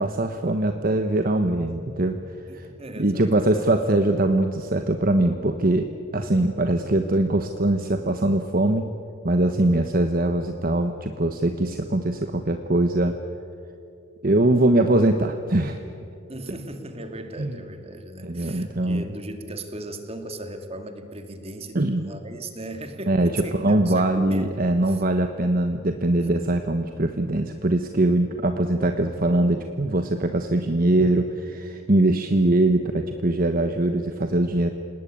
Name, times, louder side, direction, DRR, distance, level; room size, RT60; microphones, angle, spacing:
voice 1, 0.0-2.7 3.0-8.9 9.2-13.2 14.2-15.8 17.4-17.5 18.2-19.0 21.7-22.1 23.1-34.7, right 1 dB, 45° right, 7 dB, 1.2 m, -22 dB
voice 2, 2.5-3.6 16.3-25.0, right 1 dB, 30° right, 7 dB, 2.4 m, -37 dB
28.5 x 19.0 x 8.9 m, 2.5 s
head